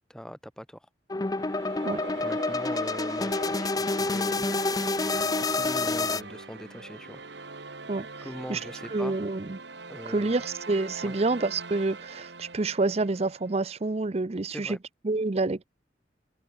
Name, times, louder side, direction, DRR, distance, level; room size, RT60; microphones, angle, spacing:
voice 1, 0.1-0.9 2.2-4.5 5.3-7.2 8.2-9.2 9.9-10.4 11.0-11.2 14.5-14.8, equal, 5° left, 6.2 m, -42 dB
sound 1, 1.1-6.2, left 3 dB, 20° left, 0.6 m, -28 dB
sound 2, 1.2-13.6, right 3 dB, 75° right, 2.3 m, -42 dB
voice 2, 8.9-9.6 10.1-14.8 15.0-15.6, right 3 dB, 35° right, 0.6 m, -28 dB
head